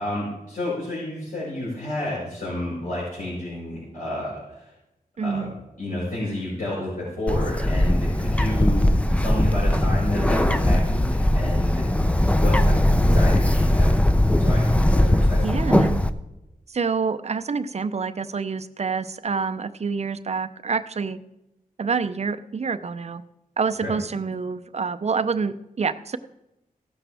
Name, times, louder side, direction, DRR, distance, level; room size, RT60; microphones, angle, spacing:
voice 1, 0.0-4.7 5.2-5.5 5.8-11.9 12.2-14.0 14.4-15.7 23.8-23.9, left 1 dB, 70° left, -8 dB, 5.3 m, -30 dB
voice 2, 5.2-5.5 15.4-16.0 16.7-21.2 21.8-23.2 23.6-26.2, right 5 dB, 45° right, 12 dB, 0.6 m, -27 dB
Bird, 7.3-16.1, left 1 dB, 10° left, 0.6 m, -19 dB
15.5 x 12.0 x 3.4 m, 0.92 s
wide cardioid pair, 85°, 15 cm